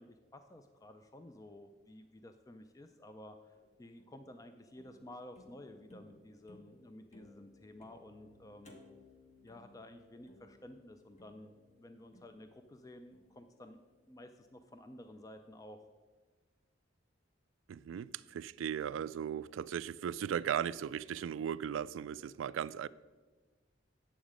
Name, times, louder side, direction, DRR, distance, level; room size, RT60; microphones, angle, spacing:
voice 1, 0.0-8.8 9.4-13.8 14.1-15.8, left 1 dB, 20° left, 0.4 m, -53 dB
sound 1, 3.5-14.7, left 2 dB, 40° left, 1.2 m, -62 dB
voice 2, 17.7-22.9, right 8 dB, 90° right, 0.3 m, -37 dB
9.3 x 7.1 x 5.0 m
head